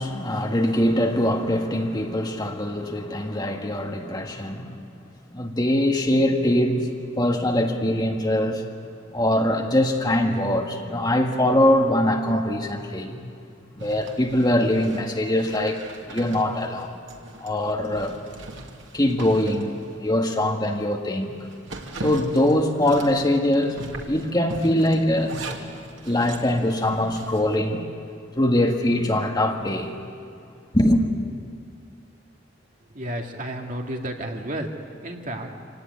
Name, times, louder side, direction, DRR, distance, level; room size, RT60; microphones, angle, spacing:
voice 1, 0.0-4.8 5.3-6.9 7.2-8.6 9.1-13.2 13.7-15.8 16.1-16.9 17.4-18.2 18.9-21.4 22.0-23.8 24.1-25.5 26.1-27.9 28.4-30.0 30.7-31.1, left 1 dB, 20° left, 2 dB, 1.7 m, -22 dB
Zipper (clothing), 13.8-20.4 20.8-20.9 21.3-27.6, right 2 dB, 80° right, 2.3 m, -39 dB
voice 2, 32.9-34.7 35.0-35.5, right 1 dB, 45° right, 1 dB, 2.2 m, -31 dB
26.0 x 17.5 x 9.7 m, 2.4 s
head